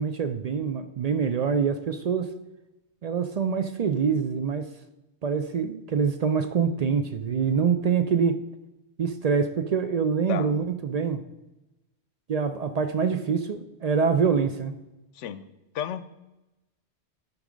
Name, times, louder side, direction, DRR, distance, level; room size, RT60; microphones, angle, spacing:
voice 1, 0.0-2.3 3.0-4.7 5.2-8.5 9.0-11.2 12.3-14.7, right 6 dB, 65° right, 0.4 m, -25 dB
voice 2, 15.7-16.0, left 9 dB, 90° left, 0.9 m, -31 dB
10.5 x 4.7 x 5.0 m
omnidirectional pair, 1.2 m